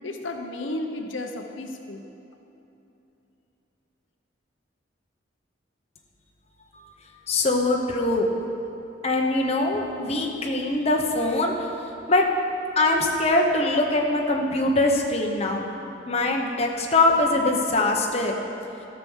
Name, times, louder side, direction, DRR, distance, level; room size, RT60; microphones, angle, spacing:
voice 1, 0.0-2.0, left 1 dB, 80° left, 4 dB, 0.8 m, -33 dB
voice 2, 7.3-8.3 9.0-11.7 12.1-12.3 12.8-15.7 16.1-18.4, left 2 dB, 35° left, 0 dB, 1.0 m, -22 dB
13.5 x 6.0 x 7.3 m, 2.9 s
head